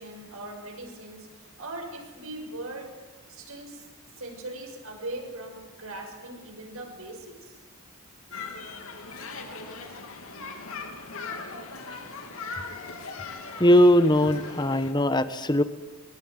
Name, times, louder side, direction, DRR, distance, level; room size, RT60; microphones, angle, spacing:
voice 1, 0.0-2.9 3.3-3.8 4.2-7.5 8.3-8.4, right 2 dB, 75° right, 3 dB, 6.4 m, -40 dB
sound 1, 8.3-14.9, left 4 dB, 75° left, 3.4 m, -39 dB
voice 2, 13.6-15.6, equal, 20° left, 11 dB, 1.2 m, -20 dB
23.0 x 21.5 x 9.5 m, 1.2 s
head